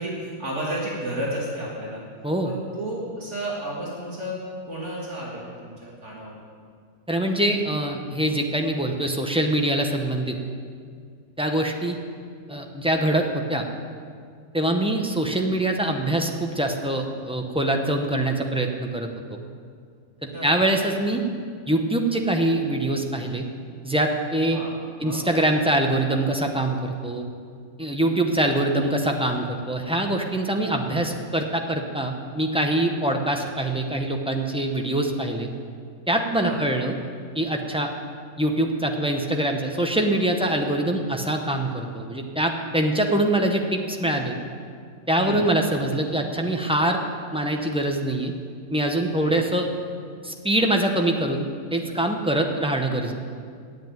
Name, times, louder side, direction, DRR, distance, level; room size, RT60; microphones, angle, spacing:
voice 1, 0.0-2.0 2.4-6.4 20.3-20.6 24.5-24.7 25.0-25.2 36.4-36.6 45.2-45.5 49.2-49.4, right 1 dB, 50° right, -5 dB, 2.2 m, -32 dB
voice 2, 7.1-10.3 11.4-12.0 12.5-13.6 14.5-19.1 20.2-21.2 21.7-23.4 23.8-24.6 25.0-27.3 27.8-35.5 36.1-36.9 37.3-37.9 38.4-44.4 45.1-47.0 47.3-48.3 48.7-49.7 50.2-53.1, right 1 dB, 5° right, 3 dB, 0.5 m, -24 dB
9.0 x 8.0 x 9.2 m, 2.1 s
omnidirectional pair, 1.5 m